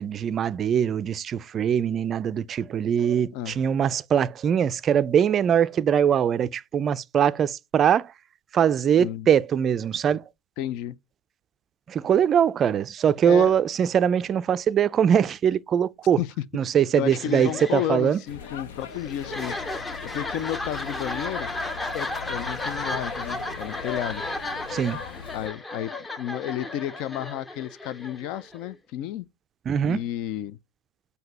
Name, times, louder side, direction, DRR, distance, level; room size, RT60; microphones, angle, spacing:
voice 1, 0.0-8.1 8.5-10.2 11.9-16.2 16.5-18.2 24.7-25.0 29.7-30.0, right 8 dB, 30° right, 0.4 m, -22 dB
voice 2, 10.6-11.0 13.3-13.5 16.2-16.3 17.0-19.8 20.1-21.5 21.9-24.2 25.3-29.3 29.8-30.6, left 12 dB, 55° left, 0.5 m, -32 dB
sound 1, 17.0-28.7, left 2 dB, 15° left, 0.7 m, -34 dB
sound 2, 18.3-25.5, left 6 dB, 80° left, 1.0 m, -41 dB
7.8 x 2.8 x 5.2 m
supercardioid pair, 120°, 0 cm